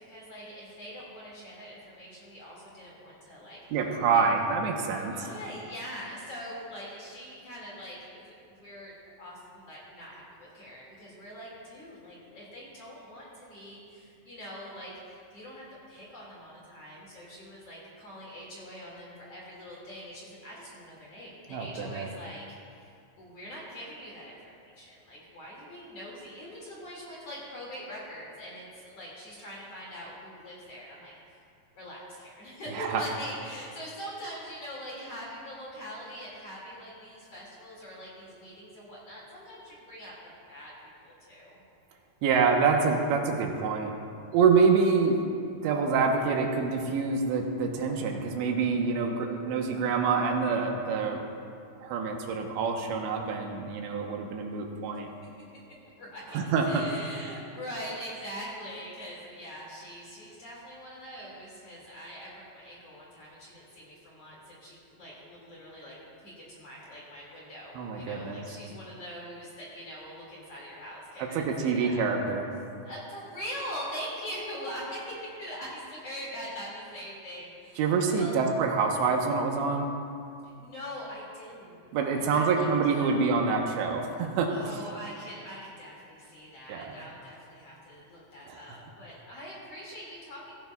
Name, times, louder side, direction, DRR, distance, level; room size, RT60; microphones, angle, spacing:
voice 1, 0.0-3.8 4.1-4.2 4.8-8.9 9.2-22.4 22.7-31.1 31.8-41.6 56.0-56.4 56.6-72.0 72.8-78.3 80.4-82.7 83.0-83.3 84.5-90.5, equal, 40° left, -6 dB, 2.7 m, -43 dB
voice 2, 3.7-5.1 21.5-22.1 32.7-33.0 42.2-43.9 44.3-51.2 51.8-55.1 56.3-56.8 67.8-68.4 71.2-72.5 77.8-79.9 81.9-84.5 86.7-87.0 88.5-88.6, right 5 dB, 85° right, 2 dB, 3.2 m, -26 dB
16.5 x 15.5 x 2.3 m, 2.4 s
omnidirectional pair, 5.0 m